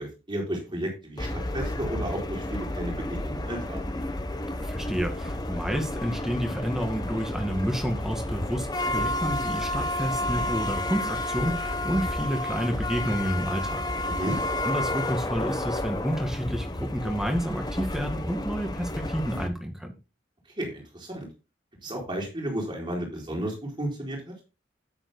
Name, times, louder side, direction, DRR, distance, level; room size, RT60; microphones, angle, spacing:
voice 1, 0.0-3.8 14.1-14.4 20.6-21.3 21.8-24.3, right 1 dB, 25° right, 0 dB, 4.4 m, -33 dB
sound 1, 1.2-19.5, left 1 dB, 20° left, 0.9 m, -31 dB
voice 2, 4.6-14.1 14.6-19.9, equal, 5° right, 4 dB, 1.9 m, -30 dB
13.0 x 9.8 x 2.2 m, 0.29 s
head